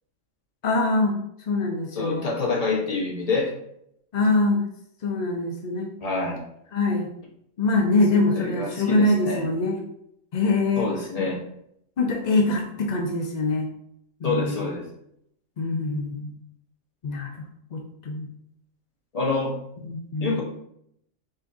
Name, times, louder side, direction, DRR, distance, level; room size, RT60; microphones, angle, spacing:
voice 1, 0.6-1.1 1.5-2.3 4.1-4.6 5.0-5.9 6.7-7.1 7.6-9.8 10.3-10.9 11.2-11.3 12.0-13.7 14.2-14.7 15.6-16.3 17.0-17.4 17.7-18.3 19.8-20.4, left 2 dB, 65° left, 1 dB, 0.4 m, -24 dB
voice 2, 1.9-3.5 6.0-6.4 8.1-9.5 10.8-11.4 14.2-14.8 19.1-19.5 20.2-20.4, left 3 dB, 30° left, -3 dB, 1.0 m, -27 dB
5.2 x 3.6 x 2.5 m, 0.75 s
omnidirectional pair, 1.4 m